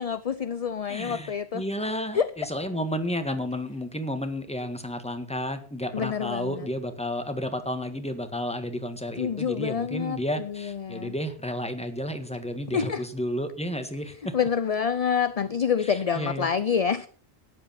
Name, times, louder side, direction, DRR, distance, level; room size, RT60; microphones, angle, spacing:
voice 1, 0.0-1.6 2.1-2.3 5.9-6.7 9.2-11.1 12.7-13.0 14.3-17.1, left 7 dB, 40° left, 13 dB, 0.6 m, -27 dB
voice 2, 0.9-14.3 15.8-16.5, equal, 5° left, 7 dB, 1.6 m, -32 dB
13.0 x 10.0 x 5.8 m, 0.42 s
omnidirectional pair, 1.1 m